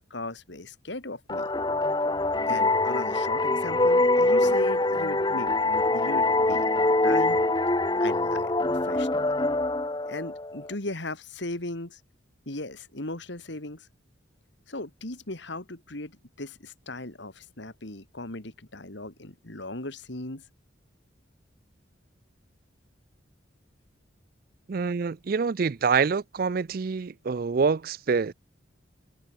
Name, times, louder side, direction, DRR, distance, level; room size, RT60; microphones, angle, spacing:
voice 1, 0.1-1.5 2.4-7.4 8.0-9.3 10.0-12.0 12.5-13.9 14.7-20.4, left 2 dB, 65° left, 2.7 m, -37 dB
sound 1, 1.3-10.7, left 2 dB, 20° left, 1.2 m, -24 dB
voice 2, 24.7-28.3, right 5 dB, 50° right, 0.4 m, -26 dB
head